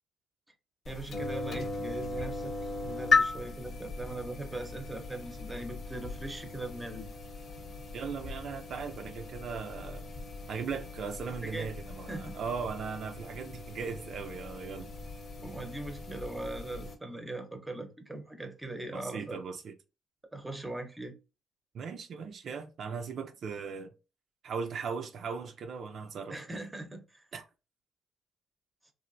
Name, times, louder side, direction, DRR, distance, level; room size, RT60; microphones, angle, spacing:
sound 1, 0.8-16.9, left 4 dB, 55° left, 0.8 m, -37 dB
voice 1, 0.9-2.5 2.8-7.1 11.5-11.7 12.1-12.4 15.4-19.4 20.3-21.1 26.3-27.2, right 2 dB, 10° right, 0.7 m, -40 dB
voice 2, 7.9-10.1 10.5-14.9 18.9-19.7 21.7-23.9 24.4-26.6 27.3-27.4, right 5 dB, 60° right, 0.4 m, -38 dB
3.0 x 2.5 x 2.5 m
cardioid pair, 90°, 0 cm